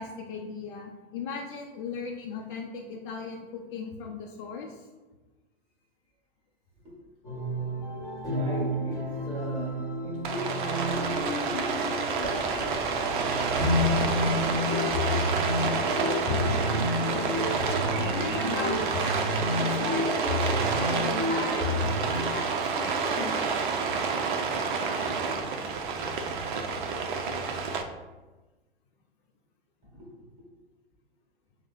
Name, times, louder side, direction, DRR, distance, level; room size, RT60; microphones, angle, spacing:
voice 1, 0.0-4.9 18.0-19.2 19.6-23.6 24.9-25.2, left 5 dB, 55° left, 1 dB, 0.5 m, -38 dB
sound 1, 7.2-22.2, left 1 dB, 10° left, 1.2 m, -30 dB
voice 2, 8.3-14.7 29.9-30.5, equal, 15° right, -3 dB, 1.4 m, -39 dB
Rain, 10.2-27.8, right 5 dB, 50° right, 0.5 m, -29 dB
6.0 x 2.1 x 2.6 m, 1.2 s
figure-of-eight pair, 100°, 31 cm